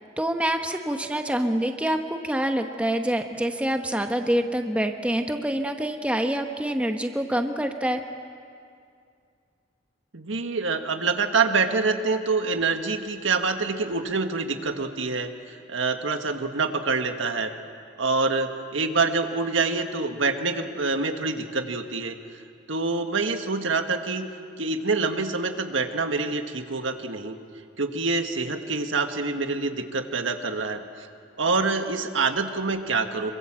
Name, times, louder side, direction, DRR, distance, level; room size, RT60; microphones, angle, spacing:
voice 1, 0.2-8.0, right 1 dB, 5° right, 5 dB, 1.0 m, -26 dB
voice 2, 10.1-17.5 18.0-22.2 22.7-24.3 24.6-27.4 27.8-31.1 31.4-33.3, right 4 dB, 80° right, 6 dB, 1.7 m, -26 dB
26.0 x 24.0 x 7.6 m, 2.3 s
head